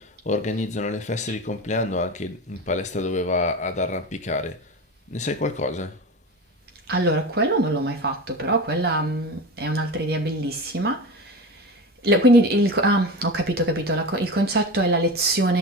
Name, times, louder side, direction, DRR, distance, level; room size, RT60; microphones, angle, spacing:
voice 1, 0.0-4.6 5.1-6.0, left 2 dB, 40° left, 1.3 m, -27 dB
voice 2, 6.9-11.0 12.0-15.6, right 1 dB, 60° right, 2.5 m, -22 dB
11.5 x 5.9 x 6.4 m
head